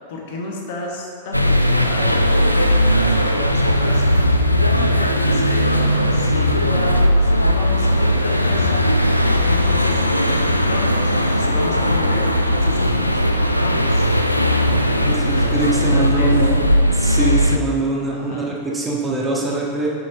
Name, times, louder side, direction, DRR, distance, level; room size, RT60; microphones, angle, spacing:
voice 1, 0.1-8.9 9.5-14.1 14.9-16.4 18.1-18.6, left 2 dB, 50° left, 0 dB, 1.4 m, -32 dB
sound 1, 1.3-17.6, equal, 90° left, 0.4 m, -17 dB
voice 2, 15.0-16.6 16.9-19.9, right 2 dB, 15° right, -3 dB, 1.6 m, -23 dB
10.5 x 6.1 x 3.6 m, 2.3 s
figure-of-eight pair, 90°, 0 cm